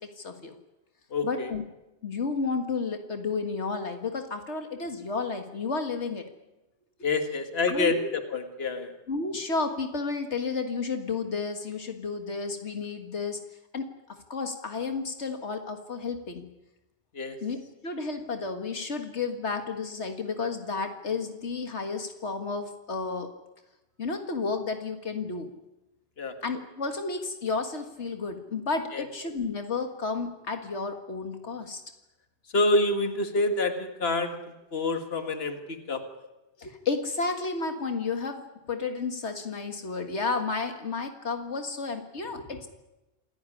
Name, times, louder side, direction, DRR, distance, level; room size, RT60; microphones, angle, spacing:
voice 1, 0.2-0.5 1.2-1.6 2.0-6.2 7.7-8.1 9.1-13.4 13.7-16.4 17.4-23.3 24.0-25.5 26.4-31.8 36.6-38.4 38.7-42.7, left 4 dB, 80° left, 6 dB, 2.1 m, -32 dB
voice 2, 1.1-1.5 7.0-8.9 17.1-17.4 26.2-26.3 28.9-29.0 32.5-34.4 34.7-36.0, left 2 dB, 60° left, 7 dB, 2.1 m, -27 dB
27.0 x 15.5 x 9.9 m, 0.99 s
omnidirectional pair, 1.1 m